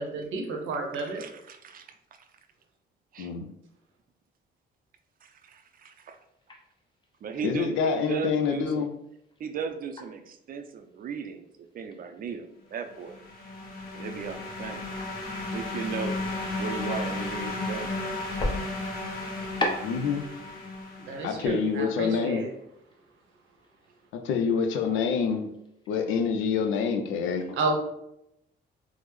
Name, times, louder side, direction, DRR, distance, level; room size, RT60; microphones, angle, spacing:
voice 1, 0.0-1.2 21.0-22.5 27.5-27.7, right 3 dB, 85° right, 2 dB, 0.8 m, -31 dB
voice 2, 1.0-1.9 3.1-3.3 5.2-6.2 7.2-8.9 9.4-11.5 11.7-13.1 13.9-14.9 15.5-16.2 16.6-17.9, right 6 dB, 45° right, 7 dB, 0.4 m, -36 dB
voice 3, 3.2-3.5 7.4-8.9 19.8-20.3 21.2-22.4 24.1-25.5 25.9-27.6, left 6 dB, 90° left, 6 dB, 0.5 m, -27 dB
sound 1, 6.2-25.9, left 1 dB, 25° left, 0.6 m, -42 dB
sound 2, 12.9-21.5, left 2 dB, 50° left, 1.1 m, -34 dB
3.4 x 2.0 x 3.1 m, 0.79 s
cardioid pair, 90°, 20 cm